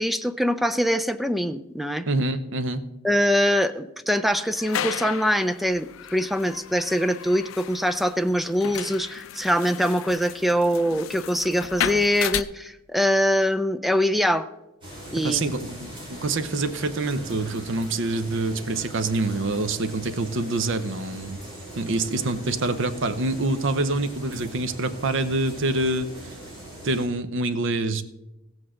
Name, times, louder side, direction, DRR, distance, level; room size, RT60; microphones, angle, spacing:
voice 1, 0.0-2.1 3.0-14.5 15.1-15.5, equal, ahead, 9 dB, 0.4 m, -23 dB
voice 2, 2.1-2.8 15.2-21.4 21.8-26.1 26.8-28.0, right 2 dB, 70° right, 12 dB, 0.7 m, -26 dB
sound 1, 4.3-12.4, left 9 dB, 75° left, 0.4 m, -34 dB
sound 2, 14.8-27.1, equal, 25° right, 4.0 m, -41 dB
15.5 x 8.0 x 3.8 m, 0.95 s
head